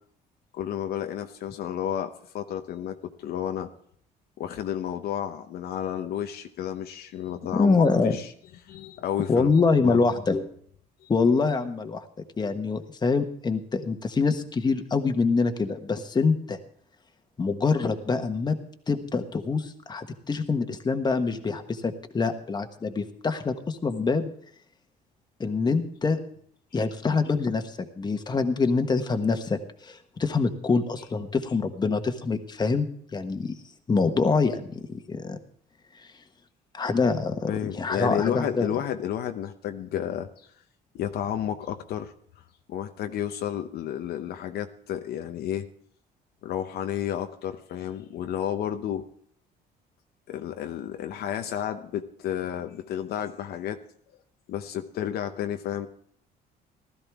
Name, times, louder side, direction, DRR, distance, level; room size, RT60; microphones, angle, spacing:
voice 1, 0.5-3.7 4.4-8.3 8.6-10.0 11.0-11.1 37.5-40.3 40.9-42.1 42.7-45.7 46.4-49.0 50.3-53.8 54.5-55.9, left 10 dB, 70° left, 6 dB, 0.9 m, -31 dB
voice 2, 7.5-8.2 9.3-10.4 11.1-12.0 12.4-16.6 17.4-18.6 18.9-24.3 25.4-26.2 26.7-33.6 33.9-35.4 36.7-38.7, left 4 dB, 25° left, 6 dB, 1.4 m, -25 dB
16.0 x 13.0 x 3.6 m, 0.63 s
cardioid pair, 110°, 17 cm